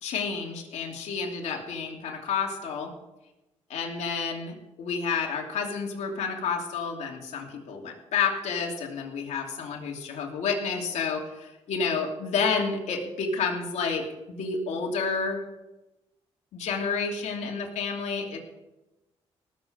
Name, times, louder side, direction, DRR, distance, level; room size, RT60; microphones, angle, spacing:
voice 1, 0.0-2.9 3.7-15.4 16.5-18.4, left 5 dB, 80° left, 0 dB, 3.0 m, -30 dB
19.0 x 7.7 x 5.2 m, 0.98 s
cardioid pair, 70°, 12 cm